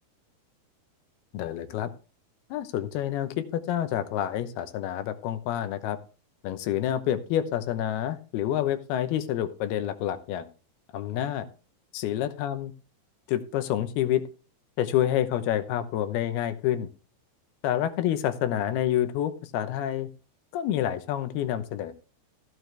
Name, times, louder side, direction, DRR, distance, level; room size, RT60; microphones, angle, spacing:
voice 1, 1.3-1.9 2.5-6.0 6.4-10.5 10.9-11.5 11.9-12.7 13.3-14.2 14.8-16.9 17.6-20.1 20.5-21.9, left 11 dB, 75° left, 10 dB, 2.8 m, -28 dB
14.5 x 9.3 x 3.3 m, 0.37 s
omnidirectional pair, 4.7 m